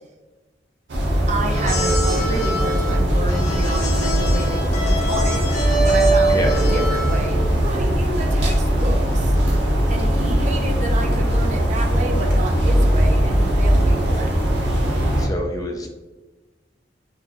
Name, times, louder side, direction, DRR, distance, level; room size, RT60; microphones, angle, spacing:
sound 1, 0.9-15.3, equal, 85° right, 0.7 m, -19 dB
voice 1, 1.3-9.3 9.9-14.4, right 2 dB, 40° right, 1 dB, 0.6 m, -30 dB
sound 2, 1.5-7.4, right 2 dB, 40° left, 1.2 m, -24 dB
voice 2, 10.2-10.7 15.2-15.9, left 1 dB, 20° left, 2 dB, 0.5 m, -28 dB
3.2 x 2.3 x 3.7 m, 1.2 s
head